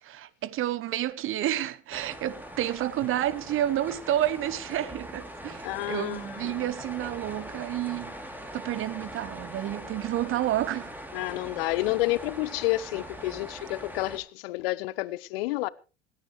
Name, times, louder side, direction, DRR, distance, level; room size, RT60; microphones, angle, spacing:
voice 1, 0.0-8.2 8.5-10.9, right 12 dB, 40° right, 1.0 m, -30 dB
sound 1, 1.9-14.2, equal, 5° right, 3.2 m, -42 dB
voice 2, 5.6-6.6 11.1-15.7, left 19 dB, 60° left, 0.7 m, -30 dB
27.0 x 9.8 x 3.2 m
figure-of-eight pair, 70°, 33 cm